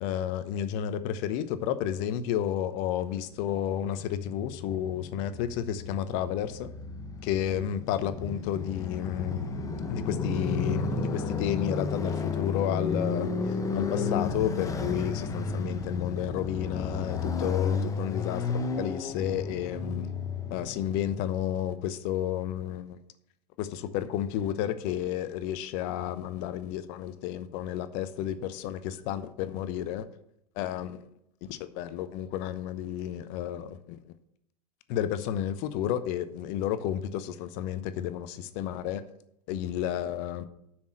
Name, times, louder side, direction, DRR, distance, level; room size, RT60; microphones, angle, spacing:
voice 1, 0.0-6.7 7.2-9.5 9.9-20.1 20.5-23.0 23.6-30.0 30.6-31.1 31.4-34.0 34.9-39.0 39.5-40.4, left 10 dB, 45° left, 12 dB, 0.9 m, -31 dB
Motorcycle, 3.4-21.6, left 4 dB, 15° left, 1.0 m, -33 dB
7.1 x 6.3 x 7.7 m, 0.76 s
figure-of-eight pair, 95°, 20 cm